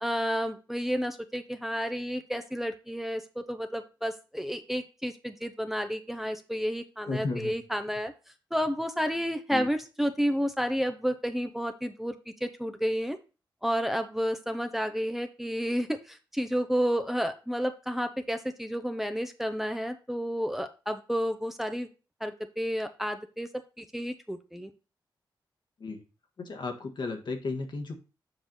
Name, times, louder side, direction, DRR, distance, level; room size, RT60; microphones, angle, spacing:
voice 1, 0.0-8.1 8.5-13.2 13.6-21.9 22.2-23.5 23.8-24.7, equal, 5° right, 7 dB, 0.8 m, -31 dB
voice 2, 7.1-7.5 9.5-9.6 25.8-26.0 26.4-28.0, left 3 dB, 65° left, 3 dB, 1.6 m, -34 dB
7.4 x 4.8 x 4.0 m, 0.32 s
cardioid pair, 60°, 8 cm